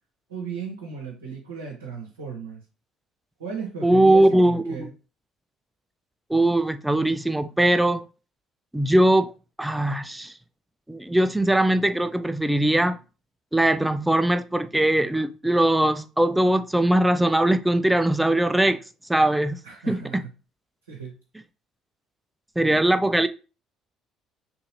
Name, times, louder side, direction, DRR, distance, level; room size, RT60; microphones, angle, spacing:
voice 1, 0.3-2.6 3.4-4.9 19.6-20.3 20.9-21.2, right 6 dB, 80° right, 0.8 m, -36 dB
voice 2, 3.8-4.9 6.3-8.0 8.7-9.3 9.6-10.3 10.9-13.0 13.5-18.8 19.1-19.6 19.9-20.2 22.6-23.3, right 1 dB, 10° right, 0.4 m, -20 dB
3.7 x 2.8 x 2.9 m
figure-of-eight pair, 55°, 0 cm